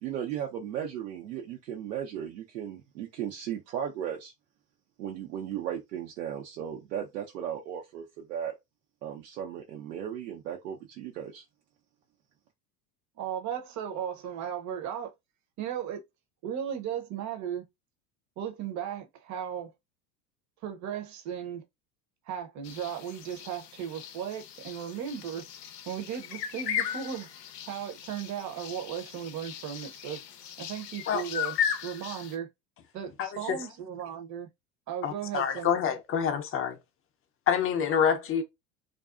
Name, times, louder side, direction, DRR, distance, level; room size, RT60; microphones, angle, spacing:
voice 1, 0.0-4.3 5.0-8.5 9.0-11.4, right 9 dB, 85° right, 0.7 m, -36 dB
voice 2, 13.2-15.1 15.6-16.0 16.4-17.6 18.4-19.7 20.6-21.6 22.3-25.4 25.9-27.3 27.7-30.2 30.6-31.6 31.8-32.5 32.9-34.5 34.9-35.8, right 9 dB, 35° right, 0.7 m, -36 dB
sound 1, 22.6-32.4, left 9 dB, 90° left, 0.6 m, -37 dB
voice 3, 33.2-33.6 35.0-36.8 37.5-38.4, left 8 dB, 30° left, 0.5 m, -27 dB
2.5 x 2.3 x 2.4 m
hypercardioid pair, 85°, 47 cm